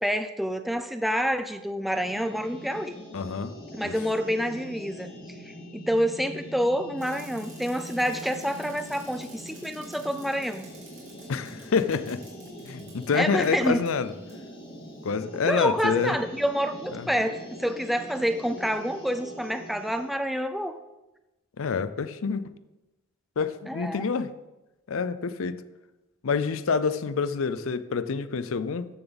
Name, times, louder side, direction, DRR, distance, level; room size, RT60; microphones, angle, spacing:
voice 1, 0.0-3.0 3.8-5.1 5.4-10.7 13.1-13.8 15.4-20.8 23.7-24.0, equal, ahead, 9 dB, 0.4 m, -28 dB
sound 1, 1.8-20.1, equal, 45° left, 2.6 m, -43 dB
voice 2, 3.1-3.5 3.8-3.9 11.3-12.3 12.6-14.1 15.0-16.2 16.9-17.1 21.6-22.4 23.4-24.3 24.9-25.6 26.2-28.9, left 5 dB, 70° left, 13 dB, 0.5 m, -27 dB
Bicycle, 7.0-13.9 14.3-14.4, right 4 dB, 60° right, 3.4 m, -52 dB
14.0 x 7.1 x 4.0 m, 1.0 s
head